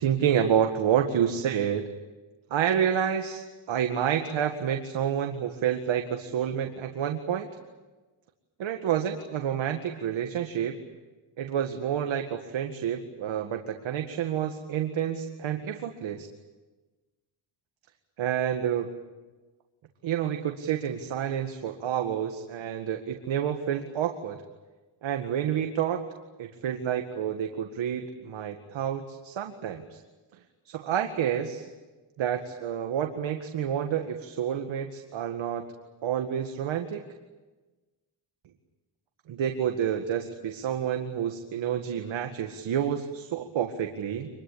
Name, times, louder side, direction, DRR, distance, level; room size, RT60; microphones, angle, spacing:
voice 1, 0.0-1.9 2.5-7.5 8.6-10.8 11.4-16.3 18.2-18.9 20.0-24.4 25.0-26.0 26.4-30.0 30.7-31.7 32.2-35.7 36.0-37.0 39.3-44.3, right 9 dB, 70° right, 5 dB, 2.0 m, -29 dB
26.0 x 22.0 x 8.7 m, 1.2 s
cardioid pair, 90°, 48 cm